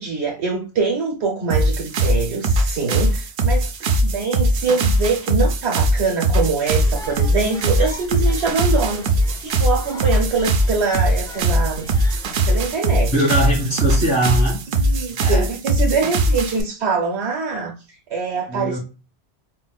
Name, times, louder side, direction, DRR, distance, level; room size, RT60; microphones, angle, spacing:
voice 1, 0.0-3.7 4.0-11.9 12.5-13.1 14.7-17.7 18.1-18.8, right 4 dB, 85° right, 1.1 m, -23 dB
sound 1, 1.5-16.6, right 1 dB, 65° right, 0.7 m, -20 dB
sound 2, 6.6-12.7, right 1 dB, 5° left, 0.3 m, -37 dB
voice 2, 13.1-15.4 16.0-16.1 18.5-18.8, right 1 dB, 55° left, 1.7 m, -22 dB
4.3 x 2.1 x 2.2 m
omnidirectional pair, 1.1 m